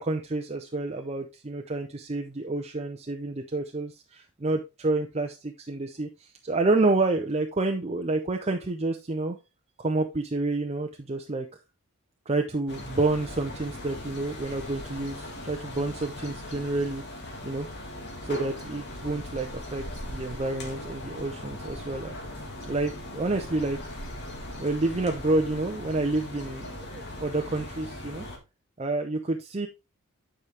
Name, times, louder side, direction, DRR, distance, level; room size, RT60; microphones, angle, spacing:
voice 1, 0.0-9.4 9.8-11.5 12.3-17.0 17.4-17.7 18.2-22.1 22.7-23.8 24.6-28.3 28.8-29.7, right 2 dB, 30° right, 3 dB, 0.6 m, -29 dB
sound 1, 12.7-28.4, left 1 dB, 50° left, 1.9 m, -39 dB
9.3 x 5.0 x 3.3 m, 0.26 s
head